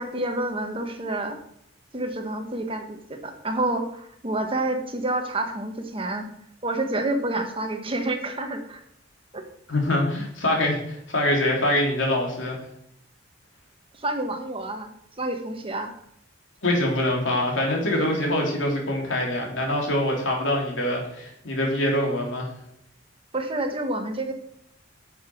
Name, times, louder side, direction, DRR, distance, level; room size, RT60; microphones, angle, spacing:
voice 1, 0.0-1.4 1.9-6.3 6.6-8.8 9.3-9.5 14.0-14.9 15.2-15.9 23.3-24.3, right 2 dB, 30° right, 5 dB, 1.4 m, -28 dB
voice 2, 9.7-12.6 16.6-22.5, left 1 dB, 90° left, 0 dB, 3.2 m, -24 dB
9.9 x 7.1 x 6.1 m, 0.74 s
head